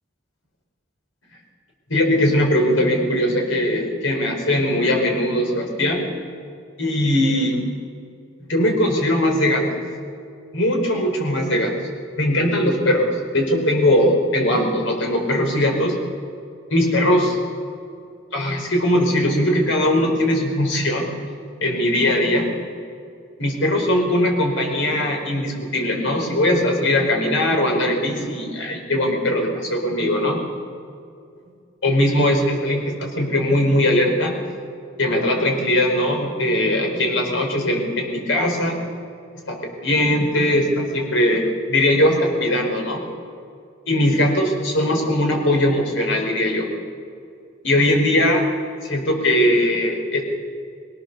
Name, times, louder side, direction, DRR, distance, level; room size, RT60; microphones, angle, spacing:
voice 1, 1.9-6.0 6.8-7.6 8.5-9.8 10.5-11.7 12.2-15.9 16.7-17.4 18.3-21.1 21.6-22.5 23.4-30.4 31.8-34.4 35.0-38.8 39.5-43.0 43.9-46.7 47.6-48.4 48.8-50.2, left 1 dB, 80° left, 2 dB, 4.9 m, -20 dB
22.5 x 18.5 x 7.0 m, 2.4 s
head